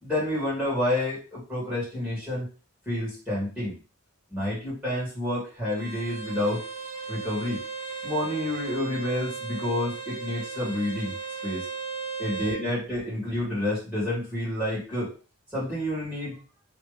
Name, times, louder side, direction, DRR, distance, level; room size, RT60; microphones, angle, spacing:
voice 1, 0.0-2.5 2.9-3.8 4.3-6.6 7.1-7.6 8.0-11.1 11.4-11.7 12.2-15.1 15.5-16.4, left 1 dB, 5° right, -8 dB, 2.1 m, -29 dB
Bowed string instrument, 5.7-12.6, right 5 dB, 70° right, 0.9 m, -36 dB
3.3 x 2.9 x 3.3 m, 0.34 s
head